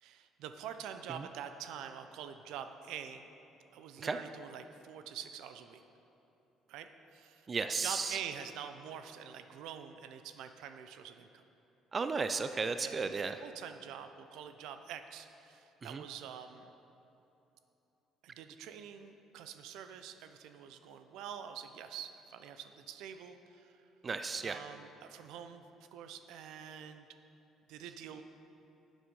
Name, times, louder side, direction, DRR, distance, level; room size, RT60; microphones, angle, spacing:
voice 1, 0.0-3.3 3.7-5.8 6.7-7.5 7.8-11.4 12.8-13.1 13.4-16.7 18.2-23.8 24.4-25.6 25.9-27.1 27.7-28.2, right 8 dB, 80° right, 9 dB, 0.6 m, -46 dB
voice 2, 7.5-8.2 11.9-13.4 15.8-16.0 24.0-24.6, right 4 dB, 30° right, 9 dB, 0.4 m, -34 dB
11.5 x 7.3 x 5.4 m, 3.0 s
cardioid pair, 110°, 0 cm